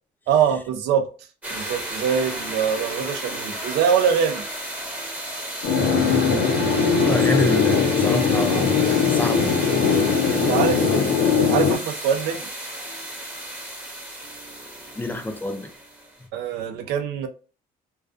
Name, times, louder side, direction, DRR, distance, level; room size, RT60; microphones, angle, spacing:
voice 1, 0.3-1.1 1.5-4.4 10.0-12.5 16.3-17.3, right 7 dB, 80° right, 0.5 m, -24 dB
sound 1, 1.4-16.2, right 1 dB, 10° right, 0.7 m, -33 dB
sound 2, 5.6-11.8, left 6 dB, 85° left, 0.7 m, -20 dB
voice 2, 7.0-9.4 14.9-15.7, left 1 dB, 10° left, 0.4 m, -27 dB
2.3 x 2.3 x 2.4 m
cardioid pair, 110°, 17 cm